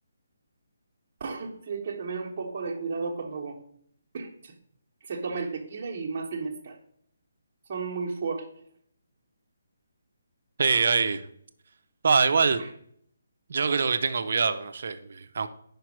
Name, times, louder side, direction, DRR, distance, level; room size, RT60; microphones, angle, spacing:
voice 1, 1.2-3.6 4.1-4.5 5.0-6.8 7.7-8.5 12.6-12.7, right 4 dB, 30° right, 1.1 m, -33 dB
voice 2, 10.6-11.3 12.0-12.6 13.5-15.5, right 5 dB, 55° right, 0.6 m, -24 dB
5.2 x 4.5 x 6.1 m
hypercardioid pair, 170°, 0 cm